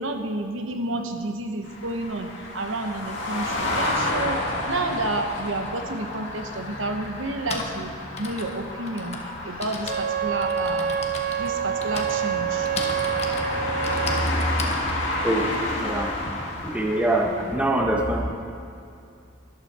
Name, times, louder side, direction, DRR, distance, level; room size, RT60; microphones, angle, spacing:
voice 1, 0.0-4.4 4.7-7.9 8.2-10.9 11.4-12.7, right 2 dB, 80° right, 5 dB, 1.0 m, -30 dB
sound 1, 1.6-17.6, left 1 dB, 75° left, 2.1 m, -30 dB
Typing, 6.1-6.2 7.2-16.3, left 3 dB, 30° left, 1.2 m, -36 dB
Wind instrument woodwind instrument, 9.8-14.3, right 8 dB, 45° right, 0.3 m, -27 dB
voice 2, 15.2-15.5 15.8-16.1 16.6-18.2, right 1 dB, 5° right, 0 dB, 1.0 m, -24 dB
14.0 x 12.0 x 4.3 m, 2.6 s
head